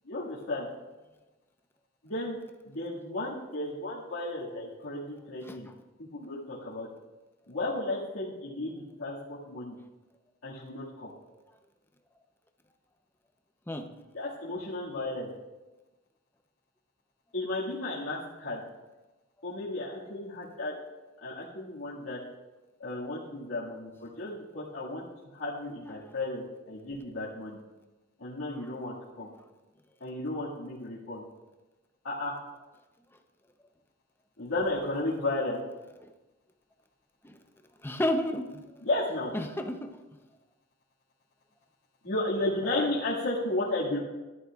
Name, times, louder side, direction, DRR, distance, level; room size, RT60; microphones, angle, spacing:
voice 1, 0.0-0.7 2.0-2.4 2.6-5.7 6.0-6.9 7.5-9.7 10.4-11.1 14.1-15.3 17.3-18.6 19.4-20.7 21.2-22.2 22.8-25.1 25.3-27.6 28.2-29.3 30.0-31.2 32.0-32.4 34.4-35.6 38.8-39.3 42.0-44.0, left 2 dB, 80° left, -8 dB, 2.0 m, -33 dB
voice 2, 37.8-38.6 39.3-40.0 42.6-42.9, left 1 dB, 10° left, 5 dB, 0.7 m, -31 dB
14.0 x 11.0 x 2.4 m, 1.1 s
head